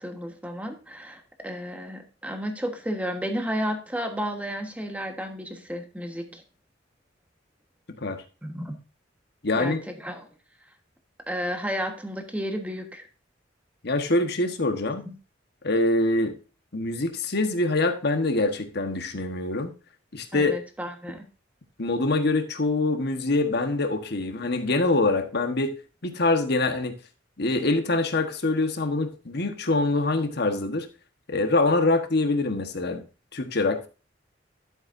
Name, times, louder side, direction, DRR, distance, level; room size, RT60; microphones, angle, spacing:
voice 1, 0.0-6.4 8.4-8.8 9.6-9.7 10.0-10.3 11.3-13.1 15.0-15.1 20.3-21.2, equal, 10° right, 4 dB, 1.3 m, -32 dB
voice 2, 9.4-9.8 13.8-15.1 15.6-16.3 16.7-19.7 20.1-20.5 21.8-25.7 26.0-26.9 27.4-30.9 31.3-33.0 33.3-33.9, left 2 dB, 60° left, 6 dB, 1.3 m, -24 dB
12.0 x 7.2 x 2.6 m, 0.34 s
head